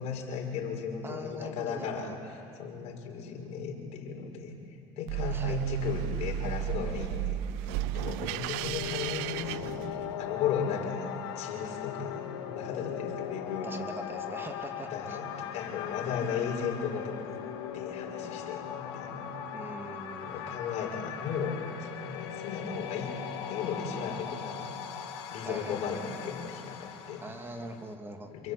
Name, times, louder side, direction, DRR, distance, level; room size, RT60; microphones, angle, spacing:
voice 1, 0.0-2.1 2.6-4.5 5.0-7.4 7.6-13.7 14.9-15.2 15.5-17.4 17.7-19.5 20.2-23.2 23.5-24.7 25.3-27.2 28.3-28.5, left 6 dB, 55° left, 1 dB, 6.0 m, -35 dB
voice 2, 1.0-2.2 5.3-5.6 13.6-15.2 19.5-20.5 25.4-26.1 27.2-28.3, right 1 dB, 15° right, 4 dB, 3.0 m, -42 dB
sound 1, 5.1-10.4, right 12 dB, 75° right, 0.6 m, -34 dB
sound 2, 8.1-27.9, left 9 dB, 90° left, 2.6 m, -39 dB
27.5 x 24.0 x 8.7 m, 2.7 s
supercardioid pair, 115°, 13 cm